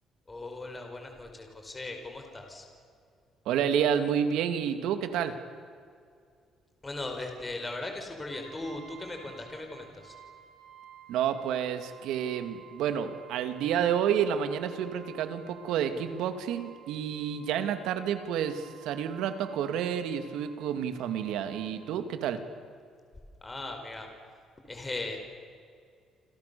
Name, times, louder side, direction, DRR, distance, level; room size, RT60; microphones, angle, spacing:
voice 1, 0.3-2.7 6.8-10.1 23.4-24.1 24.7-25.2, left 2 dB, 15° left, 4 dB, 5.1 m, -38 dB
voice 2, 3.5-5.3 11.1-22.4, right 8 dB, 85° right, 9 dB, 2.5 m, -29 dB
Brass instrument, 8.3-21.9, right 9 dB, 70° right, 6.2 m, -53 dB
28.5 x 27.5 x 7.1 m, 2.3 s
cardioid pair, 140°, 0 cm